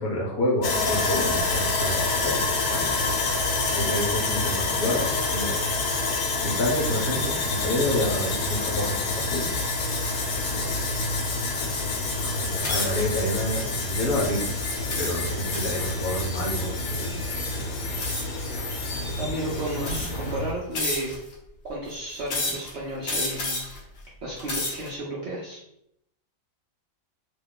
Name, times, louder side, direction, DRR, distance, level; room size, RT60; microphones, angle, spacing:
voice 1, 0.0-3.3 3.7-5.7 6.4-9.5 12.3-14.4 15.0-17.1, left 1 dB, 70° left, -1 dB, 1.1 m, -29 dB
Sawing, 0.6-20.5, left 3 dB, 85° left, 1.2 m, -27 dB
voice 2, 10.5-11.0 19.2-21.2 21.6-23.6 24.2-25.6, right 1 dB, 60° right, -4 dB, 0.7 m, -33 dB
sound 1, 12.6-13.1 13.7-14.0 14.9-15.9 18.0-18.4 19.2-19.3 19.8-20.3 20.7-21.3 22.3-22.7 23.0-23.8 24.3-24.9, left 2 dB, 50° left, 0.8 m, -30 dB
2.8 x 2.2 x 3.6 m, 0.77 s
omnidirectional pair, 1.7 m